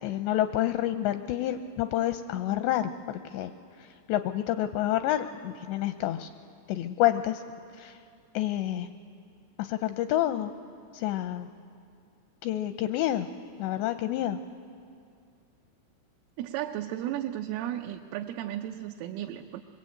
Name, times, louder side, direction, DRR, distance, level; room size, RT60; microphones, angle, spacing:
voice 1, 0.0-3.5 3.8-6.3 6.7-7.4 7.8-8.0 8.3-8.9 9.6-10.5 10.9-11.5 12.4-13.3 13.6-14.4, left 13 dB, 80° left, 9 dB, 2.5 m, -28 dB
voice 2, 16.4-19.6, right 12 dB, 85° right, 4 dB, 3.4 m, -34 dB
23.0 x 23.0 x 8.6 m, 2.3 s
omnidirectional pair, 5.7 m